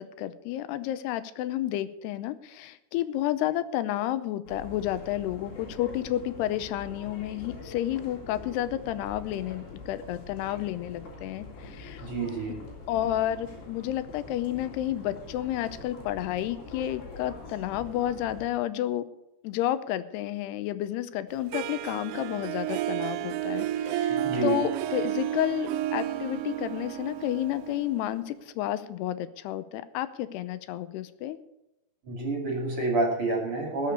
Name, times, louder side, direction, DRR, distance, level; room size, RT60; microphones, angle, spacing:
voice 1, 0.0-12.0 12.9-19.1 19.4-31.4 33.8-33.9, left 13 dB, 90° left, 13 dB, 2.8 m, -31 dB
sound 1, 4.5-18.5, left 3 dB, 65° left, 5.1 m, -44 dB
voice 2, 12.0-12.6 24.1-24.6 32.0-33.9, right 3 dB, 40° right, 1 dB, 2.8 m, -28 dB
Harp, 21.5-28.4, right 12 dB, 80° right, 2.6 m, -32 dB
19.0 x 6.8 x 6.6 m, 0.88 s
omnidirectional pair, 4.8 m